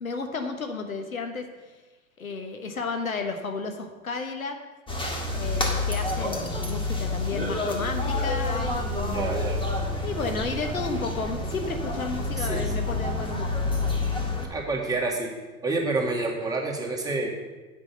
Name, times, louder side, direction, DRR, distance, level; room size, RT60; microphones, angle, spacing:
voice 1, 0.0-1.5 2.2-4.6 5.3-9.2 10.0-13.6, left 4 dB, 85° left, 5 dB, 1.2 m, -32 dB
sound 1, 4.9-14.5, left 2 dB, 10° left, 1.8 m, -28 dB
voice 2, 9.1-9.8 12.4-12.7 14.5-15.3 15.6-17.3, right 2 dB, 10° right, -2 dB, 2.2 m, -28 dB
8.7 x 6.0 x 7.8 m, 1.2 s
figure-of-eight pair, 80°, 41 cm